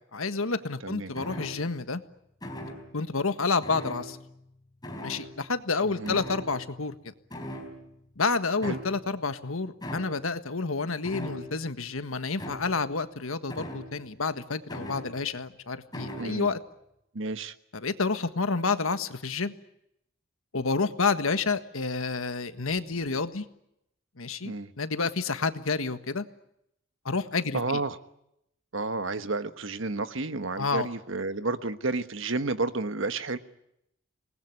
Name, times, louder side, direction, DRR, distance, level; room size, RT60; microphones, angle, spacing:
voice 1, 0.0-2.0 2.9-4.2 5.0-6.9 8.2-16.6 17.7-19.5 20.5-23.4 24.2-26.2 27.0-27.8 30.6-30.9, left 4 dB, 85° left, 10 dB, 1.6 m, -29 dB
sound 1, 1.1-1.9 2.4-3.0 3.6-4.5 4.8-5.5 6.0-7.0 7.3-8.1 8.6-9.2 9.8-10.3 11.0-11.7 12.4-12.9 13.5-14.2 14.7-15.4 15.9-16.4, equal, 20° left, 4.3 m, -40 dB
voice 2, 5.8-6.2 8.6-8.8 16.2-16.5 17.1-17.5 24.4-24.7 27.5-28.0 28.7-33.4, right 3 dB, 70° right, 11 dB, 1.3 m, -31 dB
27.0 x 20.0 x 9.8 m, 0.81 s
head